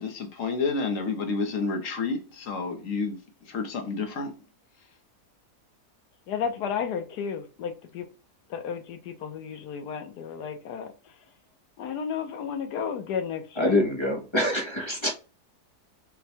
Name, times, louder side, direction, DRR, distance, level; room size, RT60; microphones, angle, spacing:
voice 1, 0.0-3.2 3.5-4.3, left 4 dB, 60° left, 1.2 m, -29 dB
voice 2, 6.3-8.1 8.5-11.2 11.8-13.8, left 7 dB, 80° left, 1.3 m, -33 dB
voice 3, 13.6-15.2, left 1 dB, 25° left, 0.7 m, -25 dB
6.0 x 2.2 x 2.8 m
omnidirectional pair, 1.7 m